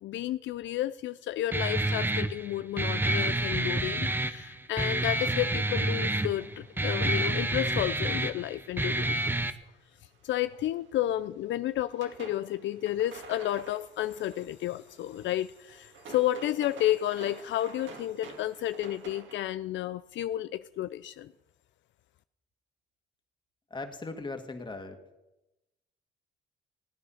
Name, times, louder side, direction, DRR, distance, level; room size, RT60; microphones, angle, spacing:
voice 1, 0.0-9.4 10.2-21.3, left 13 dB, 70° left, 0.4 m, -31 dB
Guitar, 1.5-9.5, right 2 dB, 10° right, 0.8 m, -29 dB
sound 1, 5.5-9.6 10.1-11.2 11.5-19.4, right 3 dB, 70° right, 2.4 m, -50 dB
voice 2, 23.7-25.0, left 3 dB, 25° left, 1.9 m, -38 dB
17.0 x 9.4 x 5.7 m
cardioid pair, 90°, 20 cm